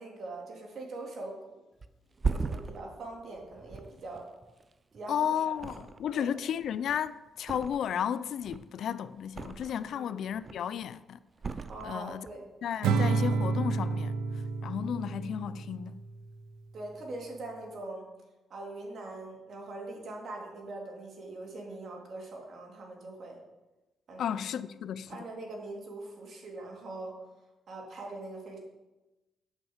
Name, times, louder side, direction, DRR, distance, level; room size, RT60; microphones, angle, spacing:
voice 1, 0.0-1.6 2.3-4.3 4.9-5.4 6.1-6.3 9.9-10.3 11.7-12.5 16.7-18.1 18.5-23.4 24.1-24.5 25.1-27.2 27.7-28.6, right 2 dB, 55° right, 2.7 m, -42 dB
Thump thud, 1.8-5.1 5.5-6.3 6.6-8.1 8.4-9.9 10.3-10.8 11.4-12.4 12.7-12.9, right 4 dB, 30° right, 0.5 m, -38 dB
voice 2, 5.1-5.7 6.0-11.2 11.8-12.3 12.6-14.1 14.6-16.0 24.2-25.1, left 9 dB, 70° left, 0.4 m, -33 dB
Acoustic guitar / Strum, 12.8-16.2, right 4 dB, 90° right, 0.5 m, -30 dB
8.1 x 5.5 x 7.8 m
cardioid pair, 90°, 0 cm